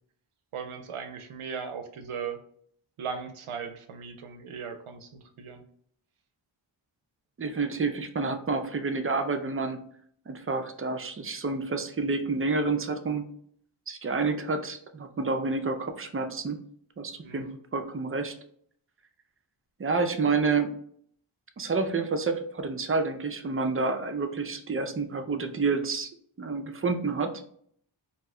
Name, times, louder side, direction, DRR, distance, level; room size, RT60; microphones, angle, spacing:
voice 1, 0.5-2.4 3.0-5.6 17.2-17.6, right 6 dB, 85° right, 7 dB, 0.5 m, -38 dB
voice 2, 7.4-9.8 10.3-13.2 13.9-16.6 17.0-18.3 19.8-20.7 21.6-26.1 26.4-27.3, right 4 dB, 30° right, 7 dB, 0.3 m, -29 dB
2.8 x 2.1 x 3.5 m, 0.63 s
wide cardioid pair, 50°, 49 cm